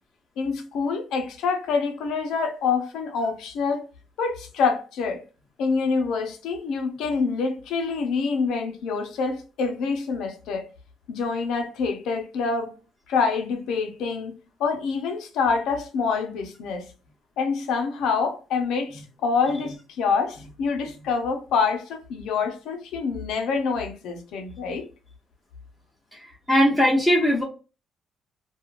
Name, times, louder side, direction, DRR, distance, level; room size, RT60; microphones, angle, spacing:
voice 1, 0.4-3.9 4.2-5.2 5.6-10.7 11.1-12.8 13.1-14.3 14.6-16.9 17.4-24.9, left 5 dB, 85° left, 0.6 m, -26 dB
voice 2, 26.5-27.4, equal, 10° left, 0.9 m, -19 dB
2.9 x 2.3 x 2.4 m
cardioid pair, 90°, 0 cm